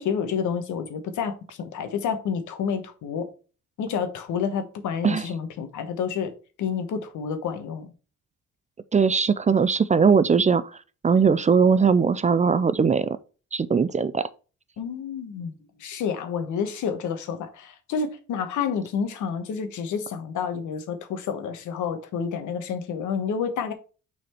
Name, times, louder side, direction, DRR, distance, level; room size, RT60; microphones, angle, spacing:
voice 1, 0.0-3.3 3.8-6.3 6.6-7.9 14.8-23.7, left 6 dB, 80° left, 1.2 m, -29 dB
voice 2, 8.9-10.6 11.0-13.2 13.5-14.3, right 5 dB, 25° right, 0.4 m, -20 dB
6.2 x 4.2 x 4.4 m
cardioid pair, 90°, 30 cm